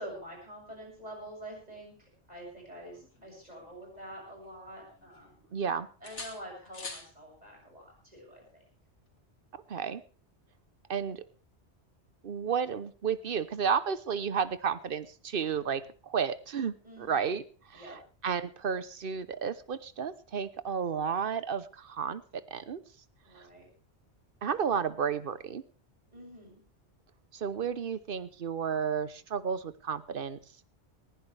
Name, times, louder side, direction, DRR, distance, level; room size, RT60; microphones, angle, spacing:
voice 1, 0.0-5.5 6.0-8.6 16.8-17.4 17.7-18.0 23.2-23.7 26.1-26.6, equal, 35° right, -1 dB, 7.5 m, -46 dB
sound 1, 2.9-4.5 4.8-5.6 6.0-7.1 9.0-9.2, left 3 dB, 85° left, 2.7 m, -47 dB
voice 2, 5.5-5.9 9.7-10.0 10.9-11.2 12.2-16.7 17.0-22.8 23.3-23.5 24.4-25.6 27.3-30.4, right 7 dB, 55° right, 15 dB, 1.0 m, -32 dB
20.0 x 15.0 x 3.4 m, 0.37 s
omnidirectional pair, 1.2 m